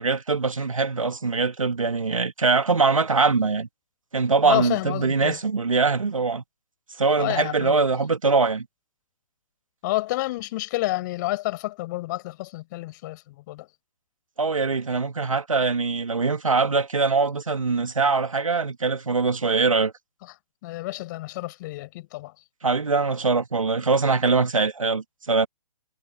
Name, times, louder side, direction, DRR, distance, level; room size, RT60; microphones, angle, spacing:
voice 1, 0.0-3.7 4.1-6.4 7.0-8.7 14.4-19.9 22.6-25.5, right 4 dB, 80° right, 1.9 m, -22 dB
voice 2, 4.4-5.4 7.2-7.8 9.8-13.7 20.6-22.3, left 18 dB, 35° left, 5.7 m, -29 dB
figure-of-eight pair, 135°, 17 cm